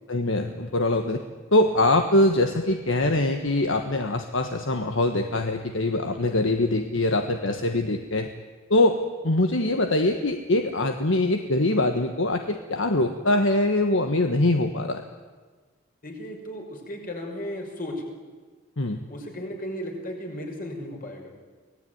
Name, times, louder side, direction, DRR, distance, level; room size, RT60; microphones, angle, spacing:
voice 1, 0.1-1.2 1.5-8.3 8.7-15.0 18.8-19.0, left 2 dB, 65° left, 6 dB, 1.4 m, -23 dB
voice 2, 16.0-18.0 19.1-21.3, equal, 45° left, 2 dB, 6.0 m, -35 dB
25.0 x 19.0 x 9.5 m, 1.4 s
head